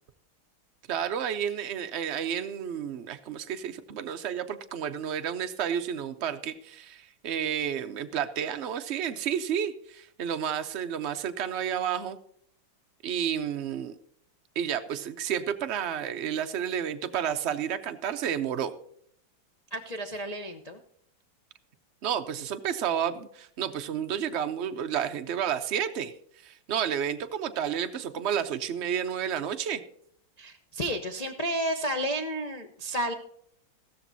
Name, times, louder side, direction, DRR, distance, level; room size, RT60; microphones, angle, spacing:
voice 1, 0.9-12.2 13.0-14.0 14.6-18.7 22.0-26.1 26.4-29.8, right 8 dB, 65° right, 8 dB, 0.6 m, -31 dB
voice 2, 19.7-20.8 30.4-33.1, right 1 dB, 55° left, 2 dB, 0.4 m, -31 dB
15.0 x 13.5 x 2.7 m, 0.68 s
omnidirectional pair, 2.2 m